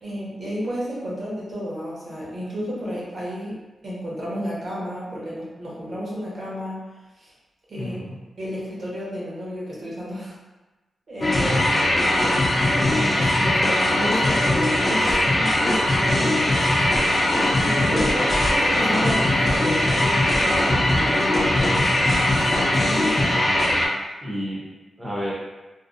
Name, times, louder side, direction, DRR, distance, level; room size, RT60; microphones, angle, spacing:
voice 1, 0.0-7.3 7.7-8.0 8.4-10.4 11.1-11.6 12.0-12.2 12.8-16.9 17.6-23.3, equal, 55° right, -6 dB, 0.8 m, -32 dB
voice 2, 7.7-8.2 11.4-11.9 18.0-18.2 23.2-23.7 24.2-24.7 25.0-25.3, equal, 15° right, -6 dB, 0.5 m, -32 dB
sound 1, 11.2-23.9, left 1 dB, 35° left, 0.4 m, -20 dB
2.5 x 2.0 x 2.4 m, 1.1 s
wide cardioid pair, 115°, 0 cm